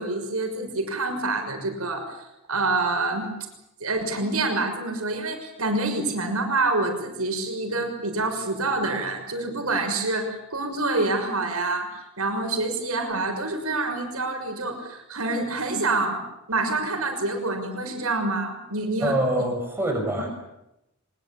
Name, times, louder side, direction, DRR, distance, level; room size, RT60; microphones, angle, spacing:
voice 1, 0.0-3.3 3.8-16.2 16.5-19.2, right 2 dB, 80° right, 5 dB, 6.4 m, -27 dB
voice 2, 19.0-20.3, right 1 dB, 10° right, 2 dB, 6.1 m, -25 dB
24.0 x 22.0 x 8.8 m, 0.88 s
head